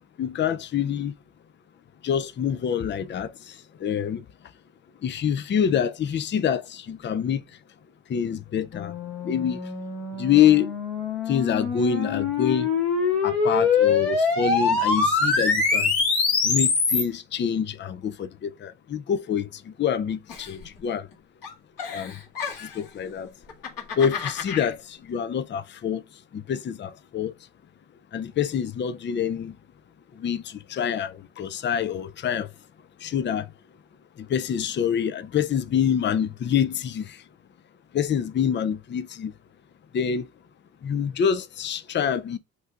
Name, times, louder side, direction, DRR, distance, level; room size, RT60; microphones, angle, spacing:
voice 1, 0.2-1.1 2.0-3.3 3.8-4.2 5.0-7.4 8.1-8.9 9.2-9.6 10.2-10.7 11.3-12.7 13.2-15.9 16.4-21.1 21.9-22.1 22.7-23.3 24.0-26.0 26.3-27.3 28.1-29.5 30.2-32.5 33.0-33.5 34.2-37.2 37.9-39.3 39.9-40.3 40.8-42.4, left 8 dB, 30° left, 0.4 m, -26 dB
sound 1, 8.7-17.0, left 4 dB, 75° left, 1.8 m, -24 dB
Giggle, 20.3-21.1 21.4-22.9 23.4-24.7, left 7 dB, 60° left, 1.8 m, -34 dB
7.9 x 2.6 x 2.4 m
supercardioid pair, 65°, 38 cm